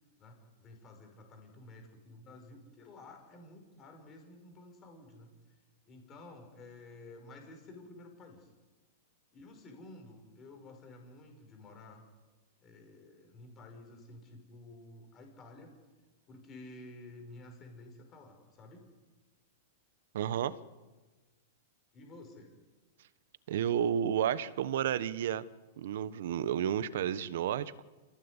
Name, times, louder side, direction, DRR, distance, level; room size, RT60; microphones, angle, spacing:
voice 1, 0.2-5.6 5.9-8.5 9.3-12.0 12.6-15.7 16.3-18.9 21.9-22.5, left 2 dB, 20° left, 4 dB, 5.7 m, -52 dB
voice 2, 20.1-20.6 23.5-25.4 25.8-27.8, right 9 dB, 60° right, 15 dB, 1.2 m, -31 dB
30.0 x 16.5 x 9.9 m, 1.3 s
supercardioid pair, 170°, 0 cm